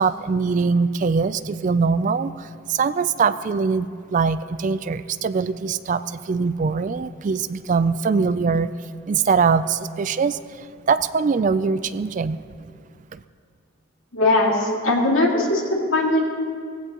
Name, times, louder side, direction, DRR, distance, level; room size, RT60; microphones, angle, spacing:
voice 1, 0.0-8.7 9.1-12.4 13.1-13.2, right 5 dB, 40° right, 13 dB, 0.3 m, -22 dB
voice 2, 14.1-16.3, left 2 dB, 80° left, -1 dB, 2.3 m, -20 dB
19.5 x 16.0 x 3.0 m, 2.2 s
head